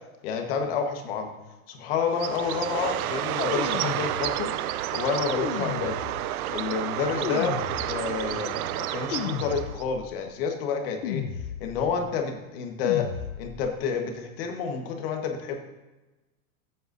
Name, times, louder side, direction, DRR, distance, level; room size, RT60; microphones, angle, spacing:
voice 1, 0.2-1.3 1.7-4.5 4.9-6.0 6.5-7.5 7.9-11.2 11.6-13.1 13.4-15.6, left 6 dB, 45° left, 4 dB, 1.4 m, -29 dB
Bird, 2.1-9.8, right 13 dB, 80° right, 0.6 m, -30 dB
sound 1, 3.4-4.6 5.3-6.5 7.2-8.3 9.1-10.1 11.0-12.0 12.8-13.7, left 9 dB, 65° left, 0.8 m, -34 dB
14.5 x 8.2 x 2.6 m, 1.1 s
supercardioid pair, 170°, 42 cm